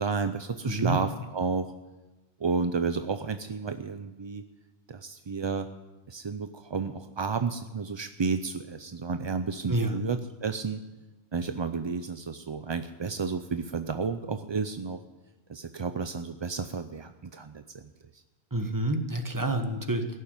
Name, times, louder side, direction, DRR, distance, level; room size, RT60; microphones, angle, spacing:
voice 1, 0.0-1.7 2.4-4.4 4.9-5.7 6.1-10.8 11.3-15.0 15.5-18.2, right 5 dB, 40° right, 9 dB, 0.4 m, -31 dB
voice 2, 0.6-1.0 9.7-10.0 18.5-20.2, right 2 dB, 20° right, 6 dB, 1.3 m, -28 dB
16.5 x 7.2 x 9.6 m, 1.1 s
omnidirectional pair, 1.1 m